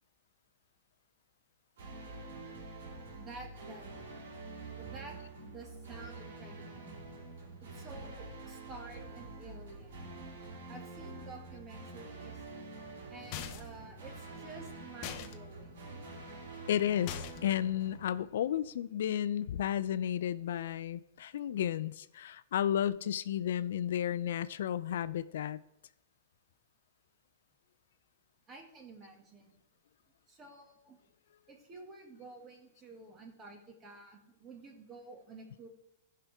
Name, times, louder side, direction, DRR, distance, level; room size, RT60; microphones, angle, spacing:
sound 1, 1.8-18.8, right 3 dB, 75° right, 2.4 m, -47 dB
voice 1, 3.1-3.9 4.7-5.2 5.4-7.0 7.6-10.1 10.7-12.5 13.1-15.7 28.5-29.6 30.3-31.0 31.5-35.7, right 3 dB, 25° right, 1 dB, 2.0 m, -51 dB
sound 2, 13.3-13.8 15.0-15.3 17.1-17.6, left 10 dB, 45° left, 0.7 m, -41 dB
voice 2, 16.7-25.6, left 10 dB, 75° left, 16 dB, 0.4 m, -33 dB
14.5 x 5.6 x 3.5 m, 0.81 s
hypercardioid pair, 140°, 0 cm